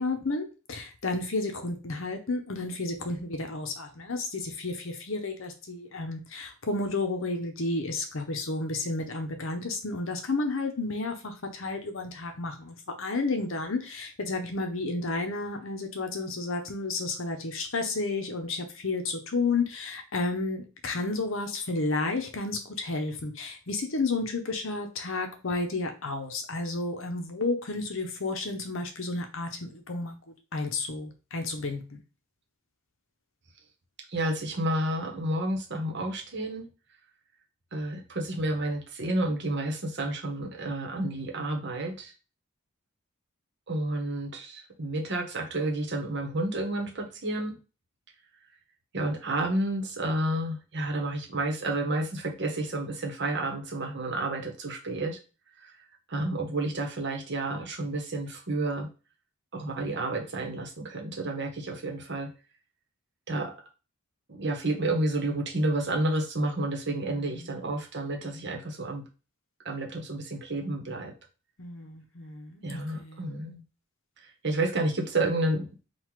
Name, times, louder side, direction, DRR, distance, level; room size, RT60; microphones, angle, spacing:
voice 1, 0.0-30.1 30.5-32.0 67.0-67.5 71.6-73.3, left 3 dB, 65° left, 5 dB, 0.9 m, -32 dB
voice 2, 34.1-36.6 37.7-42.1 43.7-47.6 48.9-55.2 55.6-55.8 56.1-58.9 59.5-62.3 63.3-63.5 64.3-69.0 69.6-71.1 72.6-73.6 74.4-75.9, right 1 dB, 50° right, 2 dB, 1.0 m, -30 dB
3.9 x 2.4 x 4.6 m, 0.33 s
head